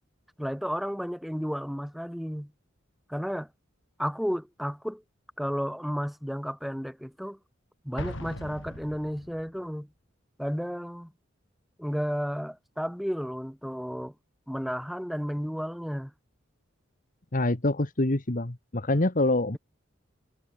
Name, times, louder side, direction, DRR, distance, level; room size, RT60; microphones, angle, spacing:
voice 1, 0.4-2.5 3.1-3.5 4.0-5.0 5.4-7.4 7.8-9.9 10.4-11.1 11.8-14.1 14.5-16.1, equal, ahead, 6.3 m, -32 dB
Explosion, 8.0-9.6, left 1 dB, 65° left, 7.4 m, -40 dB
voice 2, 17.3-19.6, left 2 dB, 40° left, 1.5 m, -25 dB
head